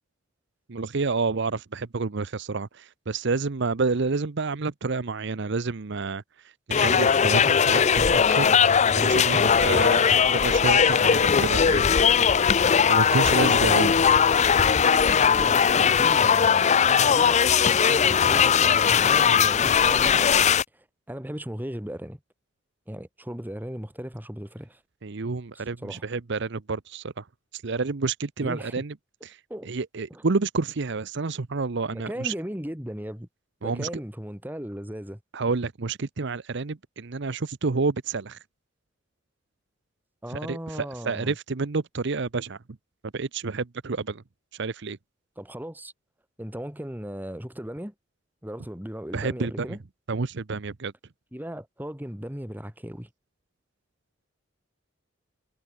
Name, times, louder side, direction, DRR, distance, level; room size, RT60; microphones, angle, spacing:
voice 1, 0.7-6.2 6.7-8.5 9.0-12.0 12.9-13.9 25.0-27.2 27.5-28.9 29.2-29.4 29.7-32.3 33.6-33.9 35.3-38.4 40.3-42.6 43.1-44.2 44.5-45.0 49.1-49.7 50.1-50.9, right 4 dB, 65° right, 0.8 m, -29 dB
sound 1, 6.7-20.6, left 7 dB, 35° left, 0.5 m, -19 dB
voice 2, 13.4-14.3 15.1-17.4 17.9-20.4 20.7-22.2 22.9-24.8 25.5-26.0 28.4-28.8 29.5-29.7 30.1-30.2 31.9-33.3 33.6-35.2 40.2-41.4 45.4-45.9 46.4-47.9 48.4-49.8 51.3-53.1, equal, 10° right, 2.8 m, -37 dB
head